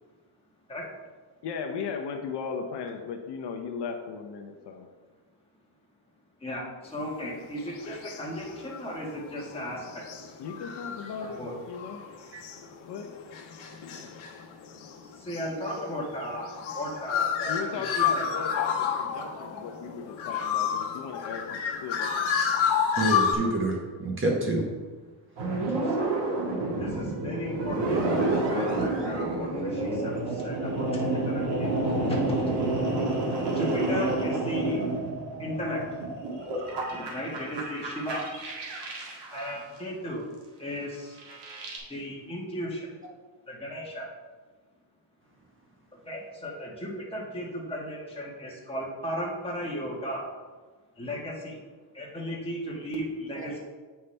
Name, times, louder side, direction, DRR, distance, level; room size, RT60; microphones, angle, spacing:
voice 1, 1.4-4.9 10.4-11.4 11.7-12.0 12.9-13.2 13.8-14.1 17.5-22.3, left 6 dB, 60° left, 4 dB, 0.8 m, -37 dB
voice 2, 6.4-10.3 11.4-11.5 15.0-18.2 23.4-23.5 25.8-26.3 26.8-31.7 32.1-32.3 33.5-34.8 35.4-35.8 36.8-38.2 39.3-40.2 40.6-41.2 41.9-42.9 43.5-44.1 46.0-50.2 51.0-51.6 51.9-53.6, equal, 10° left, -4 dB, 1.5 m, -35 dB
sound 1, 7.4-8.8 9.2-23.3, left 7 dB, 80° left, 1.2 m, -30 dB
voice 3, 23.0-24.6 35.3-35.5 53.4-53.5, right 2 dB, 25° right, 0 dB, 0.9 m, -28 dB
sound 2, 25.4-39.6 41.2-41.8, right 2 dB, 60° right, 1.7 m, -29 dB
8.0 x 5.8 x 3.3 m, 1.4 s
cardioid pair, 160°, 47 cm